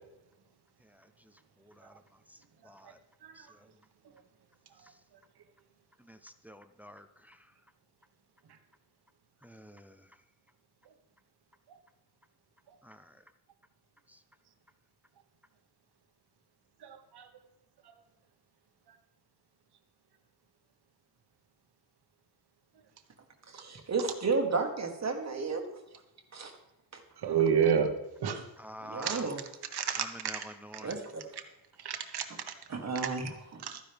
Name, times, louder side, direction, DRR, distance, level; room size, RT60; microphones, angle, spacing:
voice 1, 0.8-3.0 3.3-3.7 4.8-5.0 6.0-7.5 9.4-10.2 12.8-13.2 14.1-14.2 28.6-29.3 30.0-31.0, equal, 5° right, 10 dB, 0.5 m, -50 dB
voice 2, 16.8-17.3 27.2-27.9 28.2-28.5 29.0-29.2 29.7-30.4 31.8-32.5 32.9-33.1 33.6-33.8, right 7 dB, 70° right, 7 dB, 1.3 m, -30 dB
voice 3, 23.5-25.6 26.3-26.5 26.9-27.0 28.8-29.4 30.8-31.3 32.7-33.6, right 4 dB, 40° right, 4 dB, 1.4 m, -33 dB
13.5 x 10.5 x 3.4 m, 0.94 s
wide cardioid pair, 160°, 41 cm